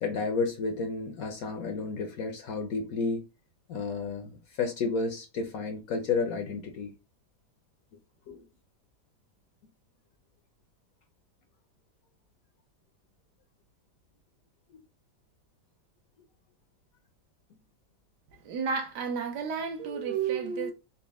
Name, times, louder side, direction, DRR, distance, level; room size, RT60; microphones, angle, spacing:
voice 1, 0.0-3.2 3.7-6.9 8.3-8.4, left 4 dB, 65° left, 0.9 m, -31 dB
voice 2, 18.4-20.7, right 6 dB, 70° right, 1.2 m, -31 dB
4.1 x 2.1 x 3.4 m
omnidirectional pair, 2.0 m